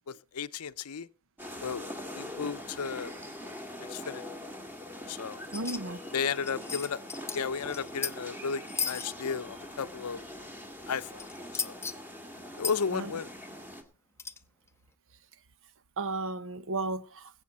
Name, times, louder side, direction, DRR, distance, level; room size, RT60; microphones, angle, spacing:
voice 1, 0.1-1.1 1.6-1.9 2.1-3.1 3.4-4.2 5.1-5.4 6.1-7.0 7.3-10.2 10.9-11.3 11.6-11.8 12.6-13.3, left 6 dB, 80° left, 0.6 m, -34 dB
sound 1, 1.4-13.8, left 1 dB, 10° right, 2.0 m, -43 dB
sound 2, 5.5-5.8 6.1-6.2 6.4-7.4 7.7-8.1 8.7-9.1 11.2-11.9 12.6-12.7 14.2-14.4, left 5 dB, 10° left, 0.7 m, -34 dB
voice 2, 5.5-6.0 12.9-13.1 16.0-17.3, right 2 dB, 60° right, 0.8 m, -34 dB
21.0 x 8.2 x 4.1 m
head